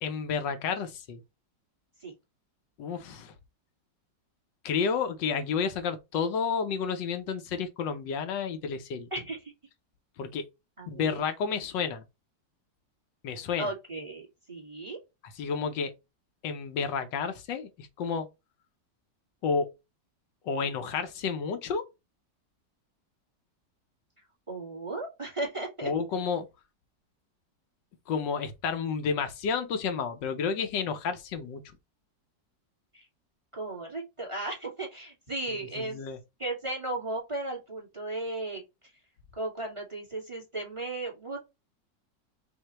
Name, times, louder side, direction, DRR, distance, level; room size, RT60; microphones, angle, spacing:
voice 1, 0.0-1.2 2.8-3.3 4.6-9.1 10.2-10.4 10.9-12.0 13.2-13.7 15.4-15.9 16.4-18.3 19.4-19.7 20.4-21.8 25.8-26.5 28.1-31.6 35.5-36.2, left 6 dB, 80° left, 1.5 m, -31 dB
voice 2, 9.1-9.5 10.8-11.2 13.6-15.0 24.5-25.9 32.9-33.1 33.5-36.0 36.4-38.6 39.4-41.4, right 2 dB, 15° right, 1.6 m, -35 dB
5.6 x 2.7 x 3.0 m
omnidirectional pair, 1.9 m